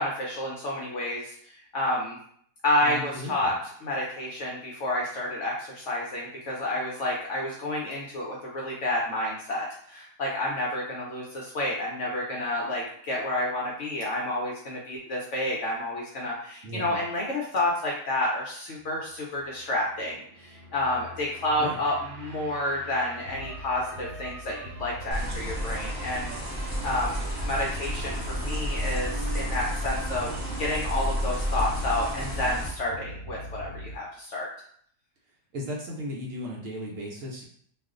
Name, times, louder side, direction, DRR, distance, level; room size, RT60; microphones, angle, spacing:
voice 1, 0.0-2.2 2.6-3.5 3.8-26.3 26.6-34.5, left 1 dB, 65° left, -3 dB, 0.7 m, -30 dB
voice 2, 2.8-3.5 16.6-17.0 21.6-21.8 35.5-37.4, equal, 65° right, -3 dB, 0.9 m, -36 dB
sound 1, 19.1-34.0, right 1 dB, 90° right, 1.2 m, -42 dB
sound 2, 25.1-32.7, equal, 15° right, 0.8 m, -31 dB
2.5 x 2.4 x 3.6 m, 0.62 s
omnidirectional pair, 1.7 m